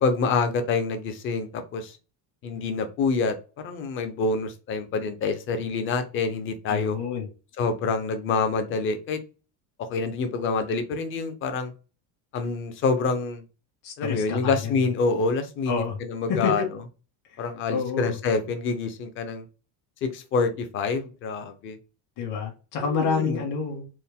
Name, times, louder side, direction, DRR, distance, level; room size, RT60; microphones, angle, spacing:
voice 1, 0.0-2.0 2.4-3.4 3.6-7.0 7.6-9.2 9.9-11.7 12.3-13.4 14.0-16.7 17.4-19.4 20.0-21.8 22.9-23.4, left 4 dB, 30° left, 0.4 m, -27 dB
voice 2, 6.7-7.3 13.8-14.7 15.7-16.0 16.3-16.7 17.7-18.2 22.2-23.9, left 5 dB, 60° left, 1.6 m, -28 dB
4.4 x 2.0 x 3.4 m
cardioid pair, 180°, 44 cm